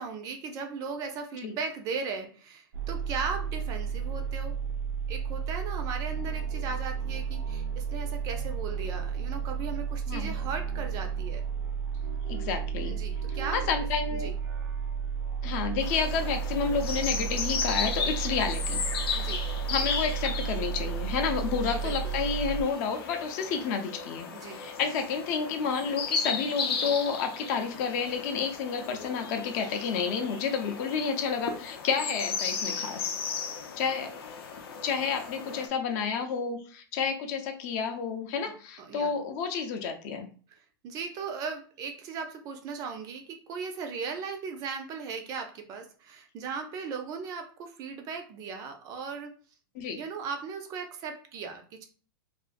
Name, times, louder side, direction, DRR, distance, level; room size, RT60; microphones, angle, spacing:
voice 1, 0.0-4.6 5.1-11.4 12.9-13.6 14.1-14.4 19.1-19.4 21.7-22.2 24.3-24.6 38.4-38.5 38.8-39.1 40.8-49.3 49.9-51.8, right 5 dB, 30° right, 5 dB, 0.4 m, -37 dB
sound 1, 2.7-22.6, right 7 dB, 85° right, 0.5 m, -33 dB
voice 2, 12.3-13.0 13.5-14.3 15.4-18.8 19.7-33.1 33.8-34.1 34.8-40.3 49.7-50.0, left 6 dB, 45° left, 5 dB, 0.5 m, -30 dB
sound 2, 15.8-35.7, left 5 dB, 85° left, 0.6 m, -35 dB
2.5 x 2.3 x 2.4 m, 0.39 s
supercardioid pair, 145°, 12 cm